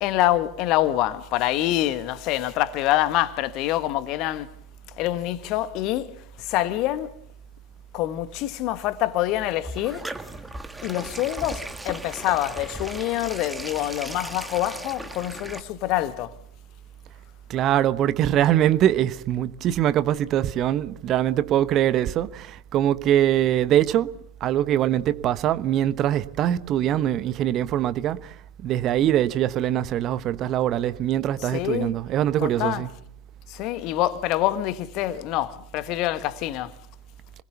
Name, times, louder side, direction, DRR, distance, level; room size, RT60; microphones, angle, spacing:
voice 1, 0.0-4.5 5.0-6.1 6.4-7.2 7.9-10.1 10.8-16.3 31.4-32.0 32.4-32.8 33.5-36.7, left 14 dB, 40° left, 1.3 m, -26 dB
sound 1, 9.3-15.6, right 1 dB, 5° right, 1.6 m, -37 dB
voice 2, 17.5-22.5 22.7-24.1 24.4-28.2 28.6-32.9, right 11 dB, 35° right, 1.0 m, -22 dB
29.0 x 20.5 x 7.0 m
figure-of-eight pair, 90°, 0 cm